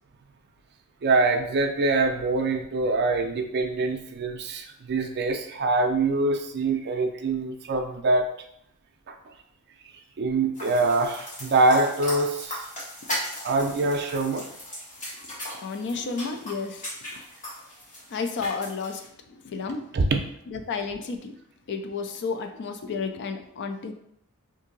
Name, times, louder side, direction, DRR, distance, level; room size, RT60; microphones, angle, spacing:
voice 1, 1.0-8.3 9.1-9.2 10.2-12.7 13.2-14.5 19.9-20.2, right 3 dB, 50° right, 4 dB, 0.4 m, -24 dB
sound 1, 10.5-19.1, equal, 35° left, 1.4 m, -37 dB
voice 2, 15.6-17.2 18.1-20.0 20.5-21.3 21.7-23.9, left 4 dB, 55° left, 6 dB, 0.4 m, -32 dB
2.7 x 2.7 x 3.9 m, 0.72 s
head